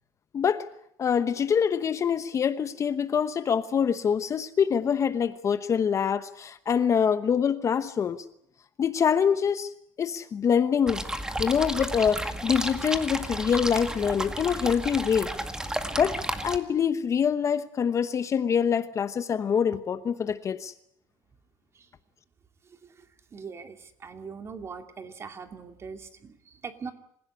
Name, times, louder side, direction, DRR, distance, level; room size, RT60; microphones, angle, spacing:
voice 1, 0.3-0.7 1.0-8.2 8.8-9.7 10.0-11.0 11.4-15.3 16.0-20.7, left 7 dB, 30° left, 12 dB, 1.0 m, -25 dB
sound 1, 10.9-16.6, right 1 dB, 5° right, 2.0 m, -32 dB
voice 2, 22.7-26.9, right 5 dB, 30° right, 7 dB, 2.5 m, -42 dB
27.0 x 16.0 x 9.7 m, 0.72 s
cardioid pair, 130°, 10 cm